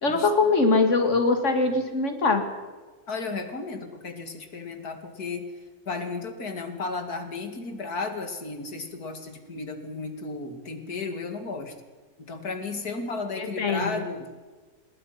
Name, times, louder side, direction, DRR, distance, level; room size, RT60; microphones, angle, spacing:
voice 1, 0.0-2.4 13.4-14.0, left 3 dB, 55° left, 6 dB, 2.6 m, -22 dB
voice 2, 3.1-5.5 5.9-11.8 12.2-14.3, left 3 dB, 90° left, 6 dB, 2.8 m, -34 dB
26.5 x 21.0 x 5.9 m, 1.4 s
omnidirectional pair, 1.6 m